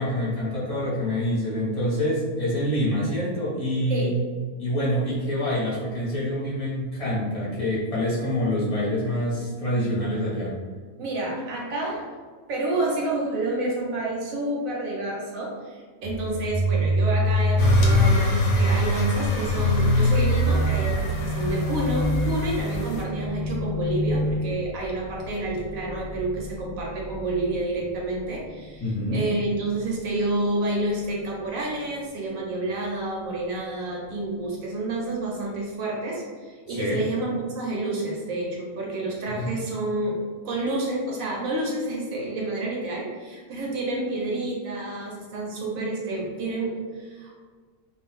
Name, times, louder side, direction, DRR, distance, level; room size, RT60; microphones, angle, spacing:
voice 1, 0.0-4.1 4.6-10.5 28.8-29.3 36.7-37.0 39.3-39.5, left 1 dB, 30° left, -8 dB, 0.8 m, -26 dB
voice 2, 11.0-12.1 12.5-40.2 40.4-47.5, right 2 dB, 70° right, -3 dB, 1.1 m, -29 dB
sound 1, 16.0-27.6, left 1 dB, 40° right, 0.8 m, -25 dB
sound 2, 17.6-23.0, left 1 dB, 70° left, 0.9 m, -25 dB
2.5 x 2.3 x 3.3 m, 1.5 s
omnidirectional pair, 1.5 m